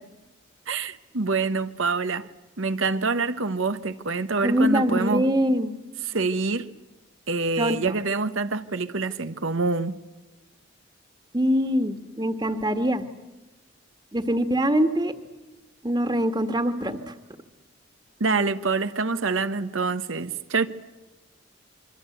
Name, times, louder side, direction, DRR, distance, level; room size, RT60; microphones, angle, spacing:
voice 1, 0.7-2.3 2.6-5.3 6.0-6.7 7.3-10.0 18.2-20.7, right 4 dB, 80° right, 1.1 m, -26 dB
voice 2, 4.4-5.7 7.6-7.9 11.3-13.0 14.1-15.1 15.8-17.1, equal, 20° right, 1.6 m, -23 dB
27.0 x 23.5 x 8.0 m
head